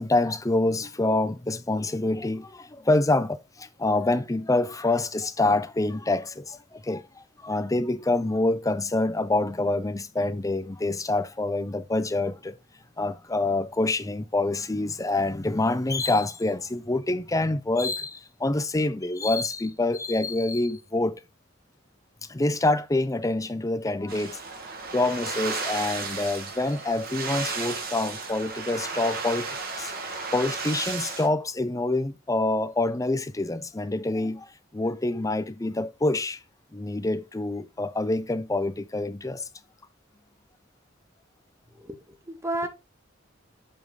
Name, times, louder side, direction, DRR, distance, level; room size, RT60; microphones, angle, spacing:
voice 1, 0.0-12.6 13.0-21.2 22.3-24.4 24.9-36.4 36.7-39.4, left 2 dB, 15° left, 0.6 m, -26 dB
sound 1, 24.1-31.3, right 4 dB, 50° right, 1.5 m, -34 dB
voice 2, 41.8-42.7, right 1 dB, 15° right, 1.0 m, -32 dB
7.3 x 4.9 x 3.7 m
head